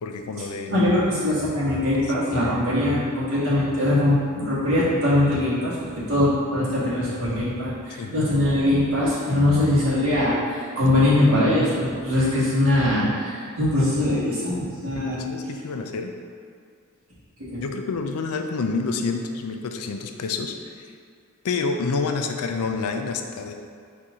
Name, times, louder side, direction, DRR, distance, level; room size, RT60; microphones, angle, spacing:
voice 1, 0.0-0.9 8.0-8.2 11.0-11.1 14.9-16.1 17.6-20.7 21.4-23.5, left 4 dB, 85° left, 5 dB, 0.4 m, -28 dB
voice 2, 0.7-5.7 6.1-15.2 17.5-17.6, left 1 dB, 65° right, -8 dB, 1.5 m, -22 dB
4.2 x 2.6 x 4.7 m, 2.2 s
head